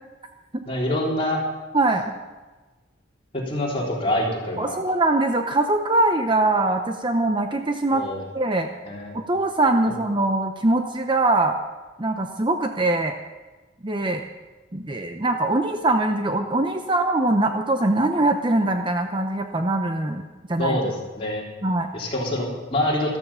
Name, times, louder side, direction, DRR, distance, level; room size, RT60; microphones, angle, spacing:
voice 1, 0.7-1.4 3.3-4.8 7.9-8.2 8.9-9.1 9.9-10.0 20.6-21.4 21.9-23.2, left 1 dB, 30° left, -4 dB, 3.7 m, -25 dB
voice 2, 1.7-2.1 4.6-8.0 8.3-8.7 9.1-11.6 12.0-13.1 13.8-14.2 14.7-20.2 20.5-20.8 21.6-21.9, right 2 dB, 25° right, 5 dB, 0.7 m, -22 dB
14.0 x 13.5 x 5.7 m, 1.2 s
head